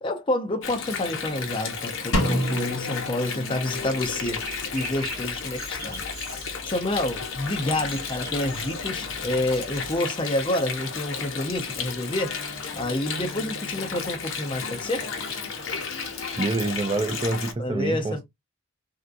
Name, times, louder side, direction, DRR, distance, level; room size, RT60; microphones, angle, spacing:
voice 1, 0.0-6.0 6.4-12.4 12.7-15.1 17.6-18.2, left 1 dB, 25° left, 0.6 m, -28 dB
Water, 0.6-17.5, left 5 dB, 65° left, 0.8 m, -33 dB
Drum, 2.1-4.1, equal, 85° left, 1.0 m, -28 dB
sound 1, 4.0-10.0, right 1 dB, 45° right, 1.7 m, -41 dB
voice 2, 16.4-18.2, right 2 dB, 25° right, 0.3 m, -26 dB
3.4 x 2.7 x 2.5 m
head